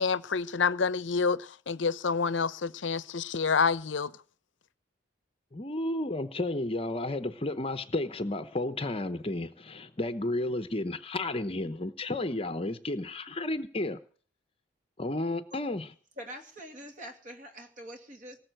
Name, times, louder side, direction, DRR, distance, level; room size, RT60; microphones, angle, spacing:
voice 1, 0.0-1.4 1.7-4.1, left 5 dB, 70° left, 0.7 m, -28 dB
voice 2, 5.5-14.0 15.0-15.9, left 2 dB, 30° left, 0.8 m, -32 dB
voice 3, 16.2-18.4, equal, 40° right, 2.6 m, -44 dB
18.5 x 7.1 x 8.9 m
head